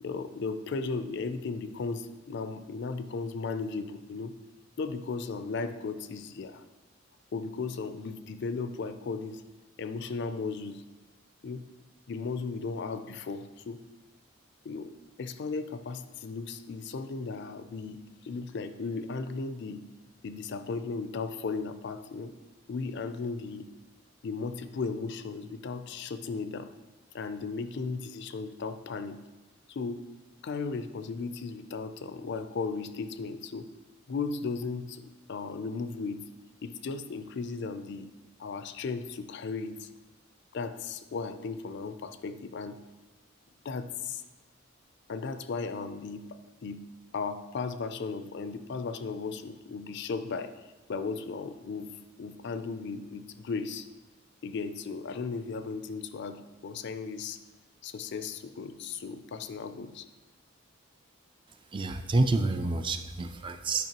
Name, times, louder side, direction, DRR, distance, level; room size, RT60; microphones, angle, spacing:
voice 1, 0.0-4.3 4.8-6.6 7.3-9.4 9.8-10.8 11.4-11.6 12.1-13.8 14.6-19.8 20.2-22.3 22.7-23.7 24.2-26.7 27.1-29.2 29.7-30.0 30.4-33.7 34.1-36.3 36.6-38.1 38.4-39.9 40.5-42.8 43.6-44.2 45.1-46.9 47.1-50.5 50.9-53.9 54.4-57.4 57.8-60.0, left 4 dB, 60° left, 10 dB, 0.4 m, -36 dB
voice 2, 61.7-63.9, right 2 dB, 25° right, 8 dB, 0.3 m, -28 dB
9.3 x 5.3 x 2.9 m, 1.2 s
head